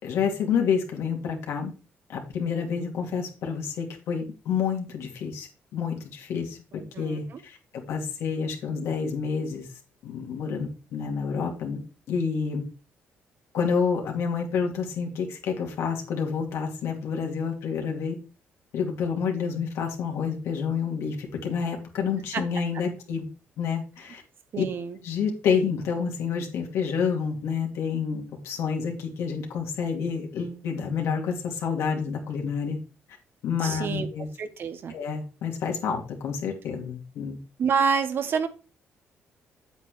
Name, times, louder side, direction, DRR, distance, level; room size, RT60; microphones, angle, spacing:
voice 1, 0.0-1.7 2.1-7.6 7.9-9.7 10.0-11.8 12.1-12.6 13.5-18.2 18.7-23.3 23.6-24.2 24.6-24.7 25.0-32.8 33.4-34.3 34.9-37.4, left 6 dB, 80° left, 2 dB, 2.5 m, -29 dB
voice 2, 6.8-7.4 22.3-22.4 24.5-25.0 33.6-34.1 34.4-34.9 37.6-38.5, right 6 dB, 55° right, 10 dB, 1.1 m, -27 dB
8.4 x 8.1 x 3.2 m, 0.32 s
cardioid pair, 105°, 5 cm